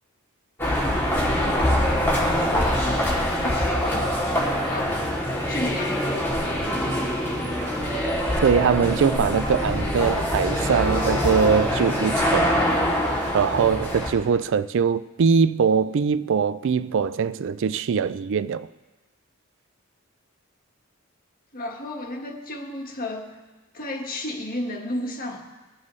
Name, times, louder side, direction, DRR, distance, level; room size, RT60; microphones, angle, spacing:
sound 1, 0.6-14.1, equal, 10° left, 2.7 m, -24 dB
voice 1, 2.4-4.2 4.6-5.0 5.5-6.3 21.5-23.4 23.7-25.5, left 1 dB, 45° left, 1.6 m, -33 dB
voice 2, 8.4-12.5 13.3-18.7, right 6 dB, 60° right, 0.4 m, -22 dB
22.0 x 7.4 x 3.2 m
head